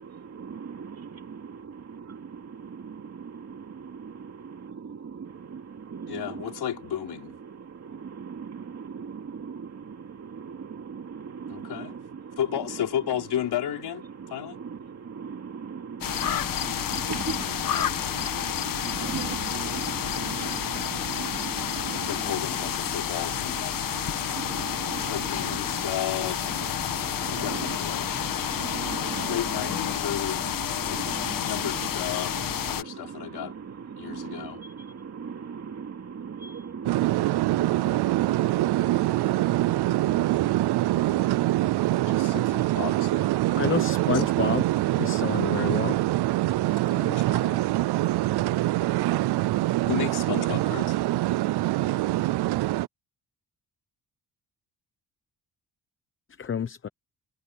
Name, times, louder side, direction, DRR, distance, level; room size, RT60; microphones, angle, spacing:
voice 1, 0.0-44.8, right 6 dB, 40° right, 2.8 m, -39 dB
voice 2, 6.1-7.4 11.5-12.0 12.4-14.6 21.9-23.9 25.1-26.8 27.3-28.1 29.3-30.5 30.8-31.0 31.4-33.5 34.0-34.6 42.1-43.4 44.1-44.2 46.9-47.8 49.9-51.0, left 11 dB, 75° left, 3.8 m, -33 dB
sound 1, 16.0-32.8, left 10 dB, 55° left, 1.5 m, -30 dB
sound 2, 36.9-52.9, right 16 dB, 80° right, 0.6 m, -24 dB
voice 3, 43.6-44.7 45.0-46.0 56.4-56.9, left 7 dB, 30° left, 0.9 m, -29 dB
wide cardioid pair, 150°, 39 cm